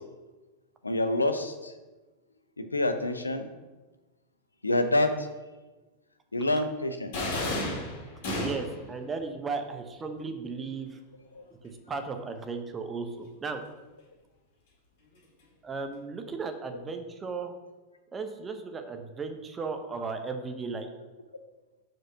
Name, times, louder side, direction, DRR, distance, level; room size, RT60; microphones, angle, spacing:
voice 1, 0.8-1.7 2.6-3.5 4.6-5.3 6.3-7.1 11.3-11.4, left 1 dB, 80° left, 9 dB, 0.5 m, -27 dB
sound 1, 7.1-8.9, left 1 dB, 50° left, 2.1 m, -31 dB
voice 2, 8.3-11.0 11.6-13.6 15.6-17.5 18.1-20.9, right 4 dB, 20° right, 6 dB, 0.7 m, -35 dB
5.0 x 4.5 x 5.4 m, 1.2 s
figure-of-eight pair, 90°, 0 cm